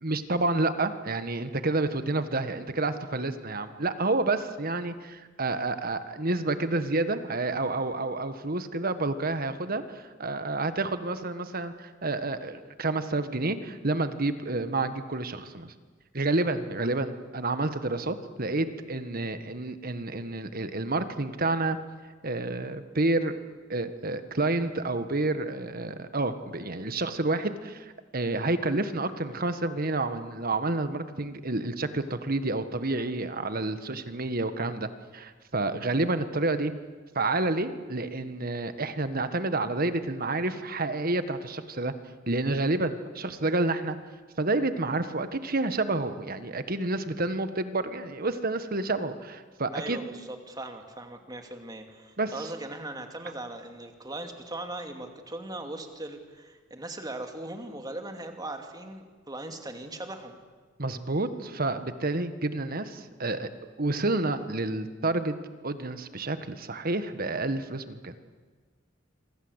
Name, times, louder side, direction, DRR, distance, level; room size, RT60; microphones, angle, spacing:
voice 1, 0.0-15.7 16.1-21.8 22.2-23.3 23.7-36.7 37.1-41.9 42.3-44.0 44.4-50.0 52.2-52.3 60.8-63.5 63.8-65.3 65.6-68.1, right 2 dB, 50° right, 10 dB, 1.6 m, -29 dB
voice 2, 49.7-60.4, right 2 dB, 20° right, 5 dB, 2.7 m, -39 dB
27.0 x 25.0 x 8.2 m, 1.4 s
head